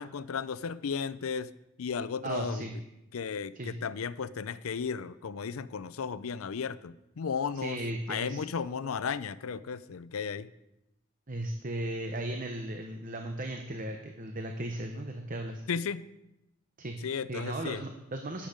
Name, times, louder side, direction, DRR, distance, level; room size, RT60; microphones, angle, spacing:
voice 1, 0.0-1.5 1.8-2.7 3.1-7.8 8.1-10.5 15.7-16.1 17.0-17.8, left 6 dB, 80° left, 17 dB, 0.5 m, -34 dB
voice 2, 2.2-2.7 3.5-3.7 7.5-8.4 11.3-15.6 16.8-17.0 17.3-18.5, right 1 dB, 40° right, 5 dB, 0.8 m, -36 dB
12.0 x 8.7 x 5.1 m, 0.91 s
head